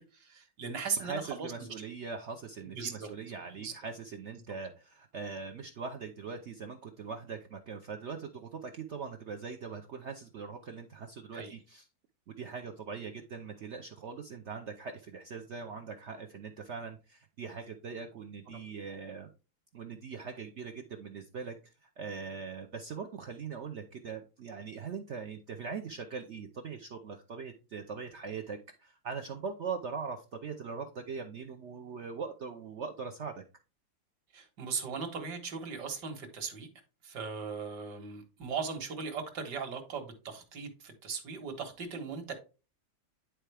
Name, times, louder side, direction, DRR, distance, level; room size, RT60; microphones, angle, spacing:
voice 1, 0.0-1.5 2.8-3.1 3.6-3.7 11.3-11.5 34.3-36.7 37.0-42.3, right 5 dB, 60° right, 2.0 m, -38 dB
voice 2, 1.0-11.9 12.4-19.3 19.7-33.4, right 5 dB, 85° right, 0.6 m, -41 dB
9.9 x 4.5 x 3.3 m
omnidirectional pair, 2.1 m